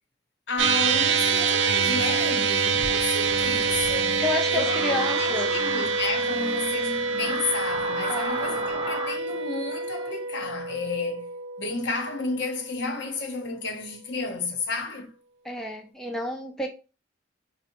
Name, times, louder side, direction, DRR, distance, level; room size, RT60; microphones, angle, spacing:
voice 1, 0.5-4.2 4.5-11.3 11.6-15.1, left 3 dB, 65° left, 0.8 m, -32 dB
sound 1, 0.6-13.1, right 5 dB, 75° right, 0.4 m, -26 dB
sound 2, 2.7-9.2, right 1 dB, 30° right, 0.8 m, -35 dB
voice 2, 4.2-5.5 8.1-8.6 15.5-16.7, left 2 dB, 5° left, 0.4 m, -30 dB
5.3 x 2.1 x 2.9 m
head